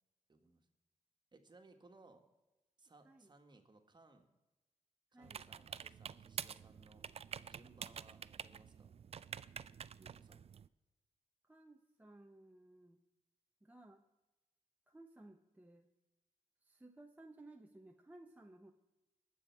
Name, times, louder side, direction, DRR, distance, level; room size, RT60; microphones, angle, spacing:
voice 1, 0.3-0.7 1.3-2.2 2.8-4.3 5.1-7.0 7.5-9.0 10.0-10.5, right 3 dB, 35° right, 6 dB, 1.7 m, -63 dB
voice 2, 5.1-5.5 11.4-13.0 13.6-14.0 14.9-15.9 16.6-18.7, right 2 dB, 10° right, 3 dB, 0.8 m, -59 dB
sound 1, 5.2-10.7, right 7 dB, 50° right, 0.4 m, -48 dB
19.5 x 7.0 x 4.7 m, 1.1 s
cardioid pair, 80°, 13 cm